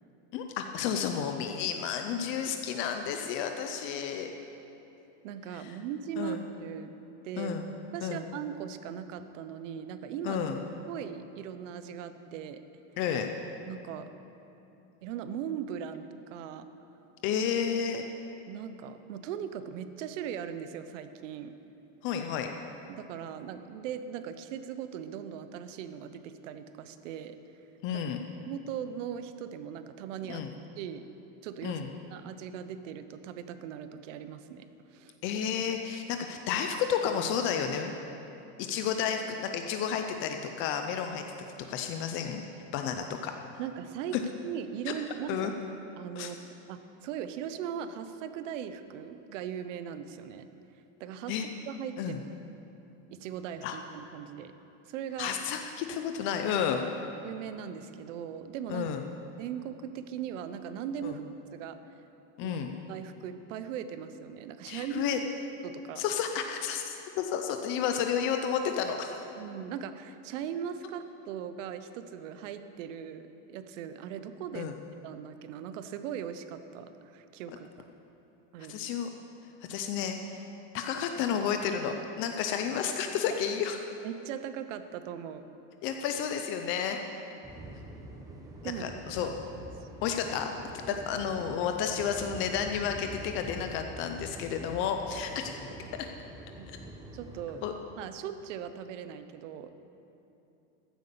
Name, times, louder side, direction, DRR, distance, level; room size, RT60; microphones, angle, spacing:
voice 1, 0.3-4.3 5.5-5.8 6.2-6.4 7.4-7.7 8.0-8.2 10.2-10.6 13.0-13.3 17.2-18.0 22.0-22.5 27.8-28.2 30.3-30.5 31.6-31.9 35.2-37.9 38.6-41.2 41.7-43.3 44.1-44.2 44.9-45.0 45.3-45.5 46.2-46.3 51.3-51.5 52.0-52.2 53.6-53.8 55.2-56.8 58.7-59.0 61.0-61.2 62.4-62.7 64.7-65.2 66.0-69.1 74.5-74.7 77.5-77.6 78.7-79.1 79.7-80.5 80.7-83.8 85.8-87.3 88.6-89.3 90.0-90.5 90.9-95.5 96.0-96.1 97.6-97.7, left 8 dB, 35° left, 5 dB, 0.5 m, -31 dB
voice 2, 5.2-6.9 7.2-7.6 7.9-10.4 10.9-12.6 13.6-14.1 15.0-16.6 18.5-21.5 22.9-27.4 28.5-30.5 30.8-31.0 31.4-31.8 32.1-35.1 43.6-44.2 44.4-45.5 46.0-46.4 46.7-50.5 51.0-51.3 51.7-52.2 53.1-54.5 54.9-55.3 57.2-58.9 59.4-61.2 61.5-61.8 62.4-62.6 62.9-65.1 65.6-66.0 69.4-74.7 75.0-77.7 78.5-78.8 84.0-85.4 88.6-88.9 89.2-89.3 89.8-89.9 95.7-95.9 96.6-96.8 97.1-97.6 98.0-99.7, right 9 dB, 70° right, 11 dB, 0.9 m, -39 dB
sound 1, 87.4-97.7, right 1 dB, 10° right, 0.8 m, -45 dB
14.5 x 8.0 x 6.8 m, 2.9 s
supercardioid pair, 170°, 38 cm